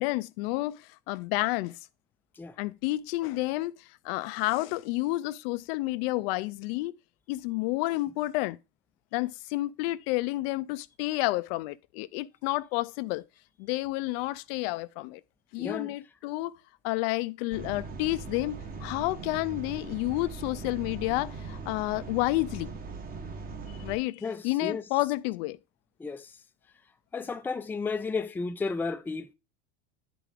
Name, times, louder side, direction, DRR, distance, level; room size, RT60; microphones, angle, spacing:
voice 1, 0.0-1.8 2.6-7.0 7.3-8.6 9.1-13.2 13.6-15.2 15.5-16.5 16.8-22.7 23.8-25.6, left 19 dB, 75° left, 0.5 m, -30 dB
voice 2, 15.6-15.9 24.2-24.8 26.0-26.3 27.1-29.3, left 4 dB, 5° left, 0.4 m, -33 dB
sound 1, 17.5-24.0, right 4 dB, 30° right, 1.1 m, -40 dB
9.9 x 4.9 x 3.7 m
supercardioid pair, 120°, 30 cm